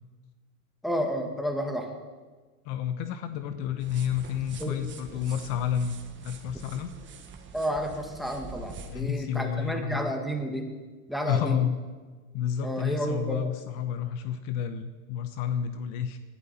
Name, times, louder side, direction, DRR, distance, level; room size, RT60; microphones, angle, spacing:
voice 1, 0.8-1.9 4.6-4.8 7.5-10.7 11.1-11.6 12.6-13.5, equal, ahead, 3 dB, 1.9 m, -31 dB
voice 2, 2.6-6.9 8.9-10.1 11.3-11.8 12.3-16.2, left 9 dB, 50° left, 10 dB, 1.0 m, -30 dB
sound 1, 3.8-9.0, right 4 dB, 25° right, 1.5 m, -45 dB
19.5 x 11.5 x 4.4 m, 1.4 s
supercardioid pair, 120°, 43 cm